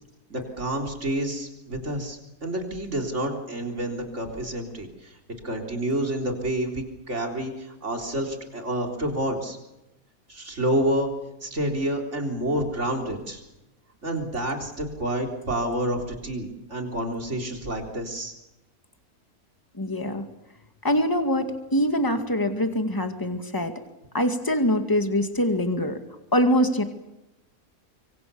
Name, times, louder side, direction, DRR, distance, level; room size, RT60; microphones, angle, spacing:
voice 1, 0.3-5.2 5.4-9.6 10.3-11.1 11.4-13.4 14.0-18.3, right 1 dB, 50° right, 2 dB, 4.2 m, -29 dB
voice 2, 19.8-20.2 20.8-23.8 24.1-26.0 26.3-26.8, equal, 15° left, 6 dB, 2.1 m, -24 dB
25.0 x 25.0 x 7.0 m, 0.99 s
omnidirectional pair, 1.6 m